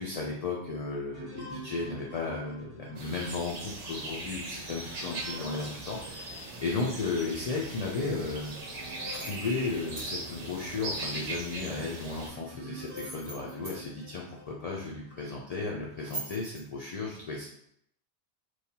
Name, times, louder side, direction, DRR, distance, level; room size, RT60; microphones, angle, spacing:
voice 1, 0.0-8.6 9.1-17.5, left 3 dB, 80° left, -3 dB, 0.3 m, -34 dB
sound 1, 1.1-6.9 7.4-7.5 8.1-15.3 15.9-16.5, right 1 dB, 10° left, 1.2 m, -50 dB
sound 2, 3.0-12.3, right 2 dB, 75° right, 1.0 m, -39 dB
sound 3, 8.9-10.1 12.7-13.8 16.0-16.6, right 2 dB, 35° right, 0.9 m, -42 dB
3.1 x 2.2 x 2.8 m, 0.72 s
omnidirectional pair, 1.2 m